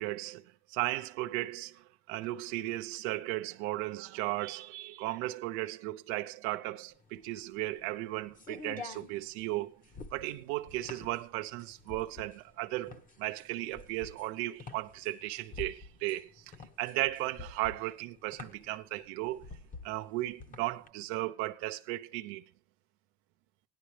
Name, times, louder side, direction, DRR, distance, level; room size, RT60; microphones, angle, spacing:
voice 1, 0.0-9.8 10.1-16.5 16.8-19.5 19.8-22.4, right 17 dB, 85° right, 0.8 m, -36 dB
sound 1, 7.0-20.9, left 4 dB, 25° left, 1.1 m, -48 dB
17.0 x 11.0 x 3.3 m
cardioid pair, 145°, 35 cm